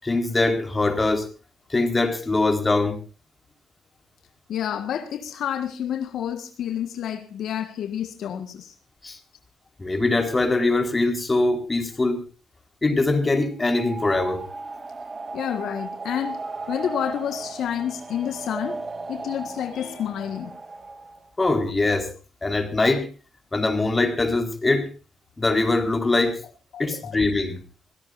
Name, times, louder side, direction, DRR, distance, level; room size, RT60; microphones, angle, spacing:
voice 1, 0.0-1.3 1.7-3.0 9.0-9.2 9.8-12.2 12.8-14.4 21.4-22.1 22.4-23.1 23.5-24.9 25.4-26.4 26.8-27.6, left 2 dB, 20° left, 4.3 m, -22 dB
voice 2, 4.5-8.7 15.3-16.4 16.7-18.8 19.1-20.5 26.7-27.2, left 9 dB, 70° left, 1.6 m, -29 dB
sound 1, 13.6-21.3, right 3 dB, 25° right, 1.4 m, -36 dB
25.0 x 17.0 x 2.6 m
cardioid pair, 90°, 0 cm